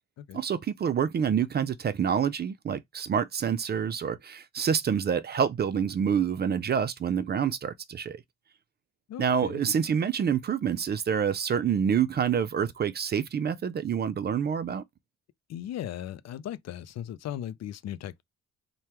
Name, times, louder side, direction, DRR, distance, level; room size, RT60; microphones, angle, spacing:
voice 1, 0.3-8.2 9.2-14.8, right 7 dB, 35° right, 0.4 m, -27 dB
voice 2, 9.1-9.6 15.5-18.2, left 11 dB, 60° left, 0.5 m, -37 dB
3.3 x 2.2 x 2.9 m
cardioid pair, 90°, 30 cm